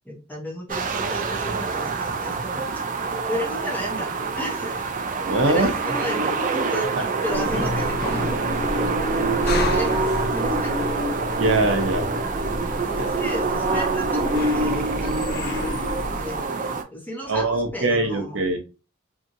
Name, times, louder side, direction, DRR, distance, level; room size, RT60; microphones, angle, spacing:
voice 1, 0.1-2.7 3.3-4.9 5.2-8.5 8.8-9.1 9.4-10.9 12.6-15.8 16.0-16.4 16.9-18.5, equal, 10° left, -1 dB, 0.8 m, -33 dB
sound 1, 0.7-16.8, right 3 dB, 40° right, 0.4 m, -26 dB
voice 2, 5.3-5.7 11.4-12.1 13.0-13.1 17.3-18.6, right 2 dB, 75° right, 5 dB, 0.7 m, -22 dB
sound 2, 7.3-16.5, left 1 dB, 50° left, 0.5 m, -31 dB
2.7 x 2.6 x 2.5 m, 0.30 s
head